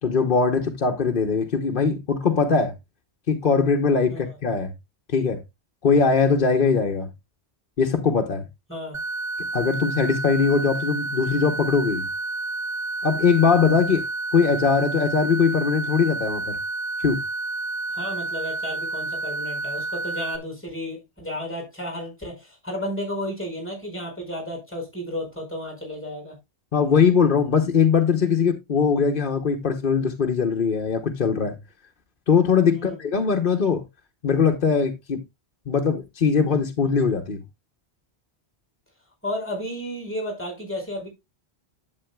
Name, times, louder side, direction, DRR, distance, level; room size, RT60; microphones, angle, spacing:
voice 1, 0.0-2.7 3.3-4.7 5.1-5.4 5.8-7.1 7.8-8.4 9.5-12.1 13.0-14.1 14.3-16.6 17.0-17.2 26.7-31.6 32.3-33.8 34.2-35.2 35.7-37.4, left 5 dB, 55° left, 1.1 m, -21 dB
voice 2, 8.7-9.0 17.9-26.4 32.7-33.0 39.2-41.1, left 1 dB, 10° left, 5.0 m, -33 dB
sound 1, 8.9-20.4, right 2 dB, 35° right, 0.9 m, -30 dB
11.0 x 7.9 x 2.2 m
omnidirectional pair, 1.1 m